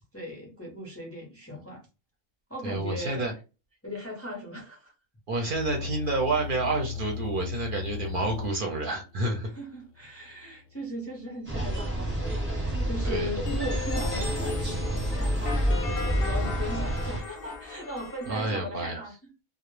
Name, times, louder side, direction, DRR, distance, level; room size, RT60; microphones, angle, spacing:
voice 1, 0.1-1.9 2.5-3.3 3.8-4.9 5.3-5.7 9.5-19.3, equal, 20° left, 0 dB, 0.4 m, -38 dB
voice 2, 2.6-3.3 5.3-9.5 13.0-13.3 18.3-19.0, right 2 dB, 55° right, 2 dB, 0.6 m, -29 dB
sound 1, 5.5-11.4, left 7 dB, 90° left, 1.0 m, -38 dB
sound 2, 11.5-17.2, right 1 dB, 10° right, 0.7 m, -29 dB
sound 3, 13.5-18.5, left 4 dB, 60° left, 0.7 m, -36 dB
2.1 x 2.0 x 3.0 m, 0.30 s
omnidirectional pair, 1.3 m